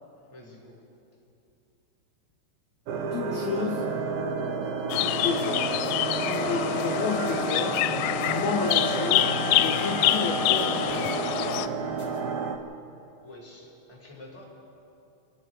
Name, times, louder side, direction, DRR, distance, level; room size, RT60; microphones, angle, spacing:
voice 1, 0.3-0.8 13.2-14.5, left 1 dB, 5° left, -5 dB, 4.6 m, -48 dB
sound 1, 2.9-12.6, right 4 dB, 80° right, 2.0 m, -30 dB
voice 2, 3.1-3.9 5.0-5.8 6.3-7.9 8.3-9.3 9.6-11.3, left 6 dB, 70° left, 0 dB, 2.5 m, -31 dB
sound 2, 4.9-11.7, left 14 dB, 85° left, 3.2 m, -26 dB
sound 3, 4.9-5.0 5.4-5.5 5.8-5.9 6.3-6.4 6.8-7.4 7.7-7.8 8.2-8.8 9.1-9.3 9.6-9.7 10.1-10.2 10.6-11.1 11.5-11.6 12.0-12.2, left 3 dB, 30° left, 6.1 m, -53 dB
27.5 x 19.5 x 4.8 m, 2.8 s
omnidirectional pair, 5.7 m